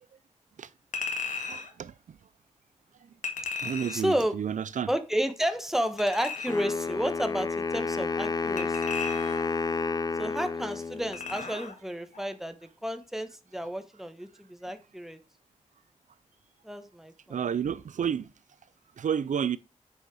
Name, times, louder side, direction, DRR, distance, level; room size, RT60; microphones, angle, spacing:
Chink clink, 0.9-1.7 3.2-4.2 6.0-6.7 8.6-9.5 11.1-11.8 12.1-12.3, left 5 dB, 80° left, 1.8 m, -36 dB
voice 1, 1.5-2.2 3.6-4.9 17.3-18.3 19.0-19.6, right 8 dB, 80° right, 0.4 m, -31 dB
voice 2, 3.9-4.4 4.9-9.0 10.2-15.2 16.6-17.4, equal, 5° right, 1.2 m, -31 dB
Wind instrument woodwind instrument, 6.5-11.5, left 4 dB, 30° left, 0.6 m, -30 dB
7.9 x 6.5 x 4.8 m
wide cardioid pair, 120°, 13 cm